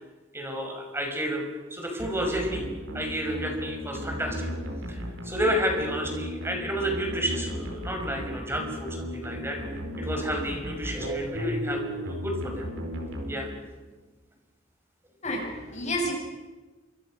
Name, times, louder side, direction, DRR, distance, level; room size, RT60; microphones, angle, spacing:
voice 1, 0.3-1.4 1.7-2.7 2.9-4.5 4.9-9.6 10.0-12.7 13.3-13.5, equal, 15° right, 2 dB, 6.0 m, -31 dB
sound 1, 2.0-13.9, equal, 85° right, 4.8 m, -35 dB
voice 2, 15.2-16.1, left 1 dB, 35° left, 0 dB, 7.8 m, -30 dB
28.0 x 25.5 x 6.5 m, 1.2 s
head